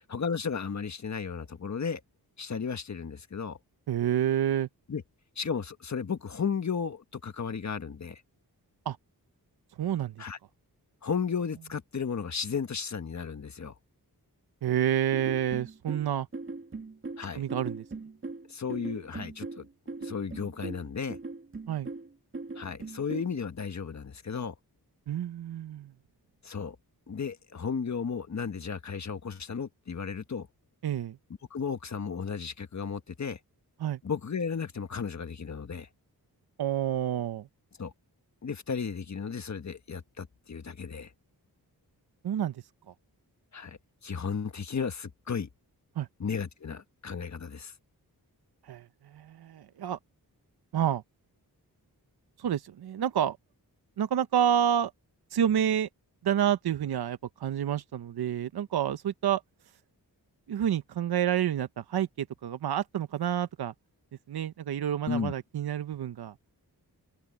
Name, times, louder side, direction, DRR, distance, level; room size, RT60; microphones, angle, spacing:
voice 1, 0.1-2.0 2.4-3.6 4.9-5.0 5.4-8.2 10.2-10.4 11.0-13.7 17.2-17.4 18.5-19.6 20.0-21.2 22.5-24.5 26.4-26.7 27.1-30.5 31.5-33.4 34.0-35.9 37.8-37.9 38.4-41.1 43.5-45.5 46.2-47.7 65.1-65.3, left 6 dB, 45° left, 1.4 m, -34 dB
voice 2, 3.9-4.7 8.9-9.0 9.8-10.1 14.6-16.3 17.3-17.8 21.7-21.9 25.1-25.9 30.8-31.2 33.8-34.0 36.6-37.5 42.2-42.9 46.0-46.1 48.6-50.0 50.7-51.0 52.4-53.4 54.0-54.9 55.3-55.9 56.2-59.4 60.5-63.7 64.3-66.3, right 10 dB, 80° right, 0.8 m, -29 dB
sound 1, 15.1-23.3, right 3 dB, 35° right, 2.2 m, -40 dB
wide cardioid pair, 155°, 38 cm